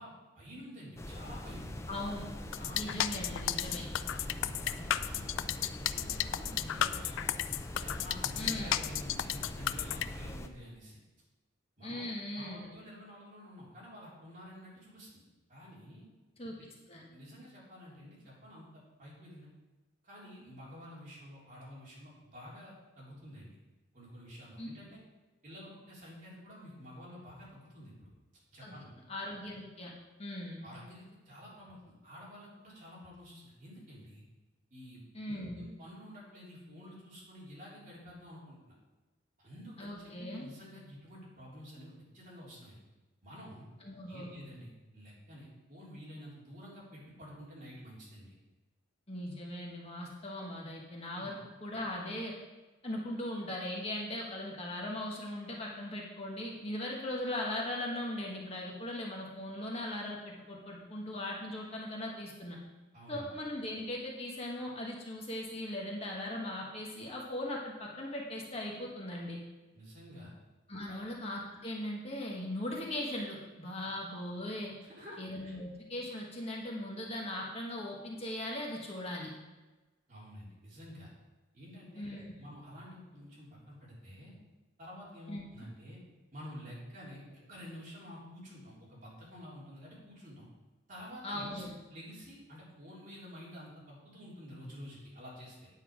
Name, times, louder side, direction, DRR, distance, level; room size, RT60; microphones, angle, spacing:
voice 1, 0.0-1.8 2.5-2.8 3.6-3.8 4.1-7.4 7.8-11.0 11.8-12.1 12.3-15.2 15.5-16.1 16.6-16.7 17.1-19.5 20.0-23.6 23.9-25.0 25.4-28.1 28.5-28.9 30.6-34.2 34.7-38.8 39.4-42.8 43.2-43.7 44.1-48.3 51.1-51.3 62.9-63.3 69.7-70.3 70.9-71.0 73.8-73.9 74.8-75.6 80.1-81.1 81.5-84.4 84.8-86.0 86.3-90.5 90.9-91.6 91.9-95.7, equal, 40° right, -6 dB, 3.6 m, -50 dB
sound 1, 1.0-10.5, left 1 dB, 15° left, 0.5 m, -43 dB
voice 2, 1.9-2.3 2.7-3.9 8.4-8.7 11.8-12.7 16.4-16.5 16.9-17.0 24.6-24.7 28.6-28.8 29.1-29.9 30.2-30.6 35.1-35.6 39.8-40.5 43.8-44.3 49.1-52.3 52.8-62.6 63.1-69.4 70.7-74.7 75.2-79.3 82.0-82.3 85.3-85.4 91.2-91.7, left 1 dB, 30° left, -2 dB, 1.3 m, -39 dB
sound 2, 2.5-10.1, left 11 dB, 70° left, 0.4 m, -33 dB
9.3 x 8.1 x 4.9 m, 1.2 s
head